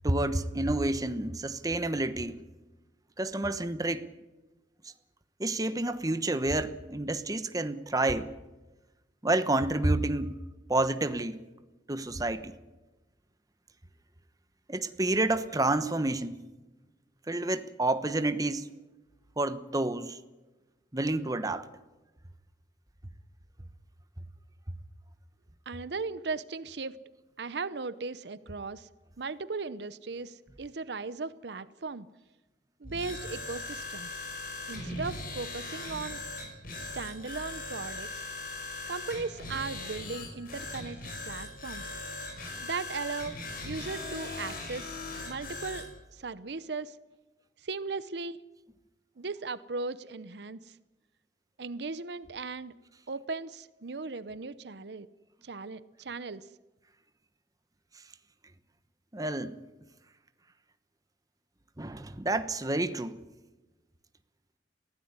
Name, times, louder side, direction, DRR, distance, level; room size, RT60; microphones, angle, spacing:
voice 1, 0.0-2.4 3.2-4.0 4.8-4.9 5.4-8.3 9.2-10.4 10.7-11.4 11.9-12.5 14.7-16.4 17.3-18.7 19.4-20.2 20.9-21.7 59.1-59.5 61.8-63.2, right 2 dB, 20° right, 1.1 m, -29 dB
voice 2, 25.7-27.0 27.4-28.9 29.2-32.1 32.8-34.2 34.7-36.2 36.9-38.2 38.9-41.0 41.3-41.9 42.6-43.4 43.6-45.0 45.3-47.0 47.6-48.4 49.2-50.8 51.6-52.7 53.1-55.1 55.4-56.5, right 4 dB, 65° right, 0.7 m, -37 dB
sound 1, 32.8-45.9, left 2 dB, 55° left, 6.6 m, -39 dB
23.0 x 16.0 x 9.6 m
head